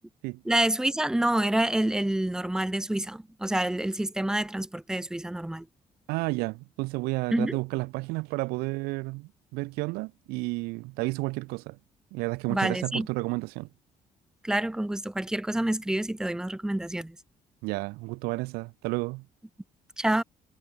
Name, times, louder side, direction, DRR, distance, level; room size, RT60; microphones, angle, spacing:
voice 1, 0.5-5.7 7.3-7.6 12.5-13.1 14.4-17.2 20.0-20.2, right 1 dB, 5° right, 0.4 m, -27 dB
voice 2, 6.1-11.8 12.1-13.7 17.6-19.2, right 24 dB, 85° right, 1.4 m, -31 dB
supercardioid pair, 65°, 16 cm